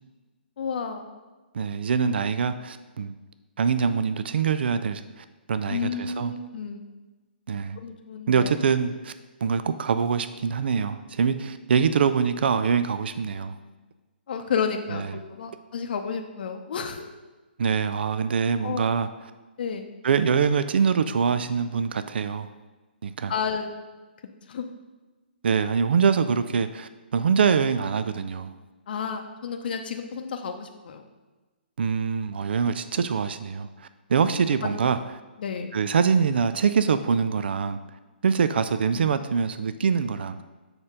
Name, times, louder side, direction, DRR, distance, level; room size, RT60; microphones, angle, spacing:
voice 1, 0.6-1.2 5.7-6.9 7.8-8.5 14.3-17.0 18.6-18.9 19.6-19.9 23.3-23.7 24.5-24.7 28.9-31.0 34.6-34.8 35.4-35.7 38.9-39.1, left 6 dB, 60° left, 5 dB, 0.6 m, -31 dB
voice 2, 1.5-3.1 3.6-6.3 7.5-7.8 8.3-9.1 9.4-13.6 14.9-15.1 17.6-19.1 20.0-22.5 23.0-23.3 25.4-28.5 31.8-35.0 35.7-37.8 38.2-40.4, right 6 dB, 70° right, 12 dB, 0.4 m, -24 dB
6.5 x 4.4 x 5.0 m, 1.2 s
hypercardioid pair, 140°, 6 cm